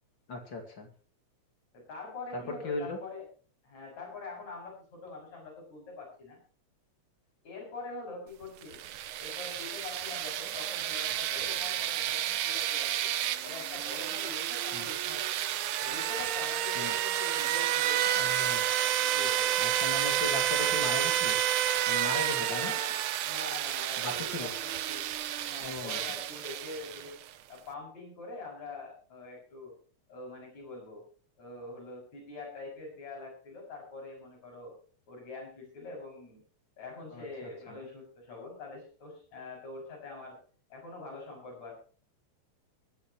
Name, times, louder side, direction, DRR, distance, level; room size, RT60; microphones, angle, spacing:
voice 1, 0.3-0.9 2.3-3.0 14.7-14.9 16.7-16.9 18.2-18.6 19.6-21.4 21.9-22.7 24.0-24.5 25.6-26.0 37.1-37.2 37.7-37.8, left 3 dB, 40° left, 2 dB, 2.8 m, -37 dB
voice 2, 1.7-3.3 3.6-6.4 7.4-8.8 9.2-13.1 13.4-15.4 15.8-19.8 20.5-20.9 22.4-25.0 25.5-27.1 27.5-29.7 30.1-31.0 31.4-34.7 35.1-36.4 36.8-40.4 40.7-41.7, left 3 dB, 65° left, -1 dB, 7.9 m, -44 dB
sound 1, 8.6-27.3, right 12 dB, 85° right, 1.1 m, -30 dB
20.5 x 11.5 x 3.1 m, 0.41 s
omnidirectional pair, 3.3 m